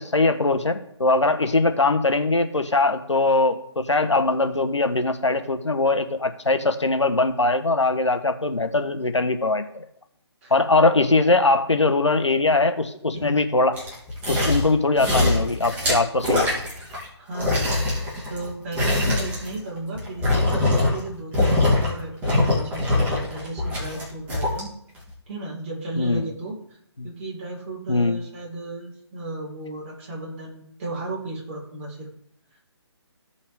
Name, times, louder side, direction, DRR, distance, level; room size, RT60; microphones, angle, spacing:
voice 1, 0.0-9.8 10.5-13.8 14.3-16.6 19.1-19.2 26.0-26.3 27.0-27.1 27.9-28.2, left 2 dB, 90° left, 8 dB, 1.3 m, -21 dB
sound 1, 13.7-14.7 15.0-17.1 17.3-21.1 21.3-21.9 22.2-24.6 25.1-25.2, left 2 dB, 10° right, 2.7 m, -23 dB
voice 2, 17.1-24.7 25.3-26.6 27.0-32.1, right 2 dB, 30° right, -3 dB, 3.9 m, -34 dB
15.5 x 5.7 x 3.5 m, 0.69 s
figure-of-eight pair, 150°, 15 cm